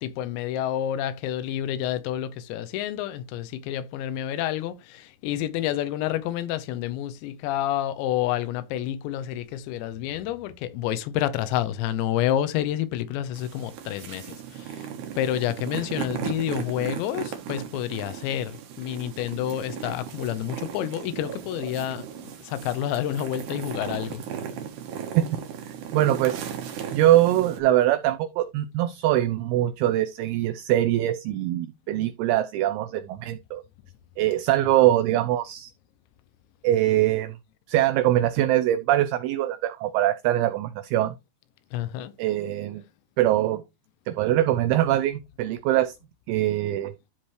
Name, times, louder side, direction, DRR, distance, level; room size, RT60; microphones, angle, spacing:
voice 1, 0.0-14.9 15.2-22.1 22.4-24.2 41.7-42.1, left 11 dB, 90° left, 3.0 m, -29 dB
sound 1, 13.3-27.6, right 8 dB, 65° right, 2.2 m, -36 dB
voice 2, 25.9-26.4 26.9-33.6 34.2-35.7 36.6-37.4 37.7-41.2 42.2-42.8 43.2-43.6 44.1-46.0 46.3-46.9, right 13 dB, 85° right, 2.2 m, -23 dB
12.5 x 4.3 x 3.2 m
omnidirectional pair, 5.0 m